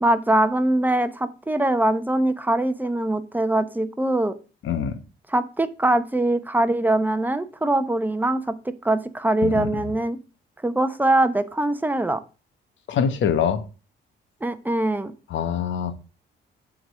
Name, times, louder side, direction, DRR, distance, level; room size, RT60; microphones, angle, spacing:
voice 1, 0.0-4.3 5.3-8.5 8.8-10.2 10.6-12.2 14.4-15.1, right 1 dB, 10° right, 0.9 m, -22 dB
voice 2, 4.6-4.9 9.4-9.7 12.9-13.6 15.3-16.0, left 7 dB, 70° left, 1.1 m, -24 dB
7.8 x 3.8 x 6.2 m
cardioid pair, 90°, 20 cm